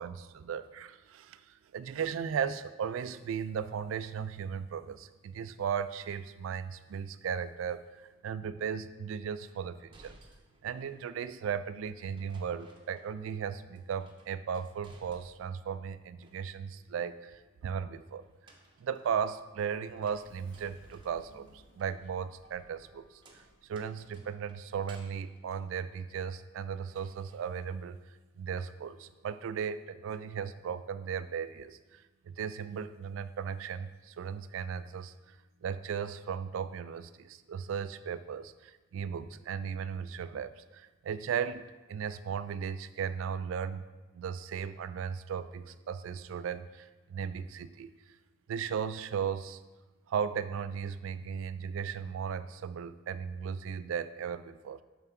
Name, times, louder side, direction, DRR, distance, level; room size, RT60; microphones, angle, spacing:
voice 1, 0.0-10.2 10.6-18.2 18.8-23.4 23.7-28.0 28.4-35.4 35.6-43.8 44.1-47.9 48.5-49.6 50.1-54.8, right 7 dB, 75° right, 13 dB, 0.3 m, -36 dB
sound 1, 9.5-11.1 12.2-13.5 13.7-15.6 16.0-16.8 18.2-26.5 26.9-27.5, right 2 dB, 25° right, 0.6 m, -61 dB
Sliding door, 19.2-23.7, equal, 60° left, 1.2 m, -61 dB
7.1 x 3.4 x 5.7 m, 1.2 s
head